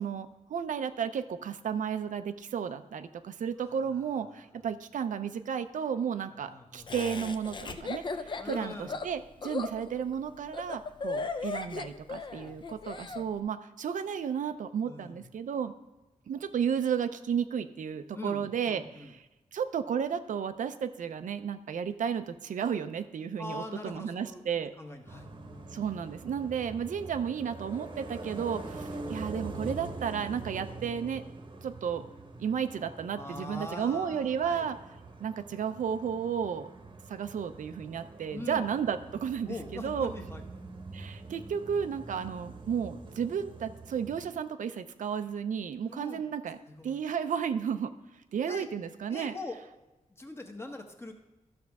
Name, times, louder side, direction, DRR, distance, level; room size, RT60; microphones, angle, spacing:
voice 1, 0.0-15.7 16.3-19.2 19.5-24.7 25.7-31.2 31.6-32.0 32.4-34.8 35.2-36.7 37.1-40.1 40.9-46.6 46.8-47.9 48.3-49.4, right 7 dB, 90° right, 9 dB, 0.5 m, -33 dB
voice 2, 3.6-4.5 6.2-6.9 8.4-8.9 12.3-13.2 14.8-15.3 18.1-19.1 23.4-25.3 33.1-34.7 38.3-38.7 39.5-40.4 45.9-46.2 46.7-47.0 48.5-48.7 49.1-49.6 50.1-51.1, left 2 dB, 20° left, 4 dB, 0.9 m, -43 dB
Laughter, 6.9-13.2, left 4 dB, 40° left, 0.5 m, -37 dB
sound 1, 25.1-44.3, right 2 dB, 40° right, 0.9 m, -44 dB
13.0 x 6.3 x 3.5 m, 1.1 s
wide cardioid pair, 150°, 13 cm